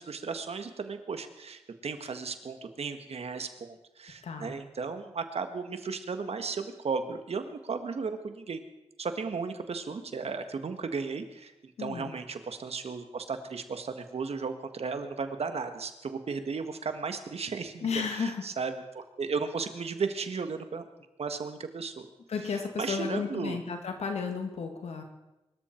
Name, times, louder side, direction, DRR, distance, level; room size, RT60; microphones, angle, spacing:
voice 1, 0.0-8.6 9.0-20.8 21.2-22.1 22.5-23.6, right 5 dB, 70° right, 8 dB, 1.6 m, -35 dB
voice 2, 4.2-4.6 11.8-12.1 17.8-18.4 22.3-25.0, left 5 dB, 90° left, 4 dB, 2.3 m, -33 dB
23.5 x 13.5 x 4.5 m, 0.98 s
cardioid pair, 50°, 11 cm